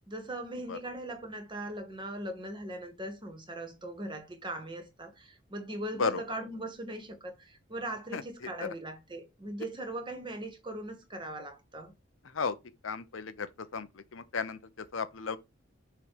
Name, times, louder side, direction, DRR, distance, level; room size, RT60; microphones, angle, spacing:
voice 1, 0.1-11.9, right 1 dB, 25° right, 1.5 m, -40 dB
voice 2, 12.8-13.5 13.7-13.9 14.1-14.6 14.9-15.4, left 5 dB, 80° left, 0.8 m, -33 dB
6.7 x 3.3 x 4.8 m
head